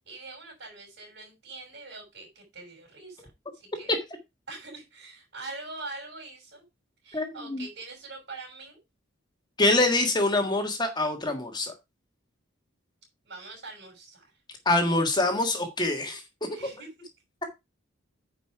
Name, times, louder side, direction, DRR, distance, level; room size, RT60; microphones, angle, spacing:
voice 1, 0.1-3.9 4.5-6.6 7.0-8.8 13.2-14.3 16.5-17.1, right 3 dB, 55° right, 5.6 m, -43 dB
voice 2, 7.1-7.6 9.6-11.7 14.6-16.2, left 2 dB, 20° left, 1.6 m, -25 dB
9.5 x 5.3 x 4.7 m
head